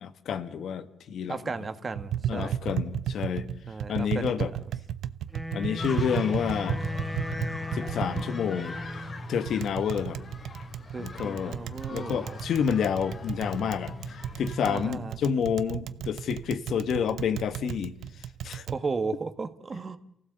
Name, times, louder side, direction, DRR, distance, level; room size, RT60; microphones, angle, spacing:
voice 1, 0.0-1.4 2.3-3.5 3.9-4.5 5.5-6.8 7.7-8.8 9.3-10.2 11.0-17.9 18.4-18.7, left 7 dB, 65° left, 1.5 m, -29 dB
voice 2, 1.3-2.6 3.7-4.3 10.9-12.4 14.7-15.2 18.7-20.0, right 4 dB, 35° right, 1.8 m, -34 dB
Tap, 1.9-18.8, right 10 dB, 75° right, 0.9 m, -35 dB
Wind instrument woodwind instrument, 5.3-9.3, equal, 5° left, 2.5 m, -38 dB
sound 1, 5.8-14.7, left 4 dB, 40° left, 2.8 m, -40 dB
28.5 x 16.0 x 8.0 m
cardioid pair, 90°, 0 cm